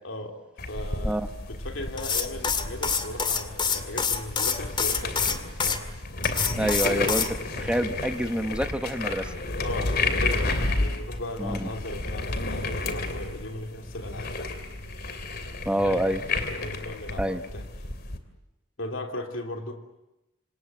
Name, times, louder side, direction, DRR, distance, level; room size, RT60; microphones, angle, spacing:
voice 1, 0.0-0.4 0.7-5.8 9.6-14.3 15.8-16.1 16.6-17.6 18.8-19.8, left 1 dB, 70° left, 3 dB, 3.2 m, -37 dB
sound 1, 0.6-18.2, left 2 dB, 50° left, 2.9 m, -31 dB
sound 2, 2.0-5.8 6.2-7.3, left 6 dB, 25° left, 2.3 m, -26 dB
voice 2, 6.6-7.3 7.6-9.3 11.4-11.7 15.6-16.2 17.2-17.4, right 1 dB, 5° right, 7 dB, 1.1 m, -27 dB
27.0 x 27.0 x 7.8 m, 0.94 s
head